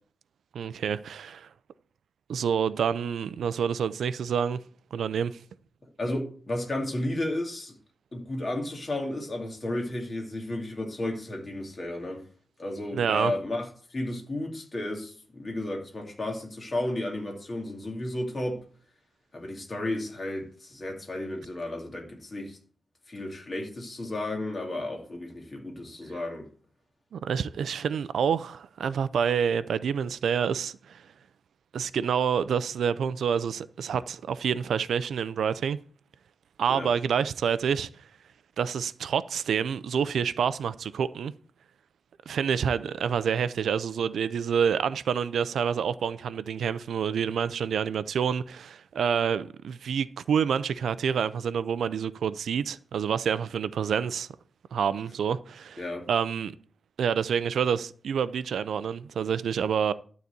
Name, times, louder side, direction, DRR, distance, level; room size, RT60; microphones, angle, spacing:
voice 1, 0.5-1.5 2.3-4.6 4.9-5.4 12.9-13.3 27.1-31.0 31.7-35.8 36.6-37.9 38.6-41.3 42.3-54.3 54.7-56.5 57.0-59.9, right 7 dB, 85° right, 0.5 m, -28 dB
voice 2, 6.0-7.7 8.1-12.2 12.6-18.6 19.3-22.6 23.1-26.4 36.7-36.9 55.8-56.1, left 1 dB, 30° left, 2.5 m, -33 dB
12.0 x 4.1 x 8.0 m
wide cardioid pair, 170°, 0 cm